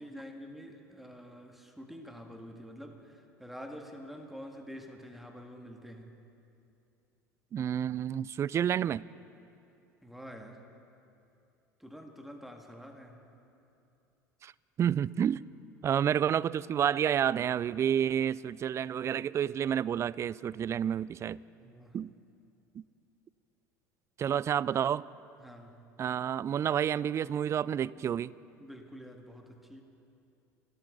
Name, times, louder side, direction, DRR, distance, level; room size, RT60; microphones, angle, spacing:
voice 1, 0.0-6.2 10.0-10.7 11.8-13.3 15.9-16.1 21.6-22.0 25.4-25.8 28.6-29.8, equal, ahead, 3 dB, 1.9 m, -47 dB
voice 2, 7.5-9.0 14.4-14.5 14.8-15.5 15.8-21.4 21.9-22.1 22.8-22.9 24.2-25.1 26.0-28.3, right 9 dB, 30° right, 22 dB, 0.3 m, -29 dB
27.5 x 13.0 x 3.9 m, 2.7 s
figure-of-eight pair, 70°, 9 cm